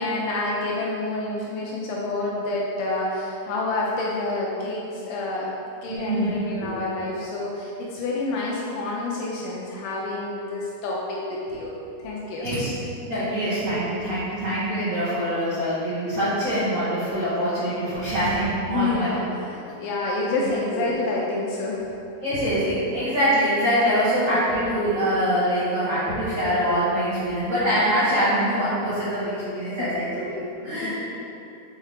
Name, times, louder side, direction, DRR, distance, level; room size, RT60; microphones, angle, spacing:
voice 1, 0.0-5.5 5.8-11.7 12.0-12.5 18.7-21.9 29.6-29.9 30.7-30.9, left 2 dB, 85° left, -4 dB, 2.8 m, -28 dB
voice 2, 6.1-6.4 12.4-12.7 13.0-19.1 20.7-20.8 22.2-30.9, equal, 75° right, -14 dB, 1.7 m, -24 dB
7.2 x 4.7 x 3.4 m, 2.8 s
omnidirectional pair, 5.9 m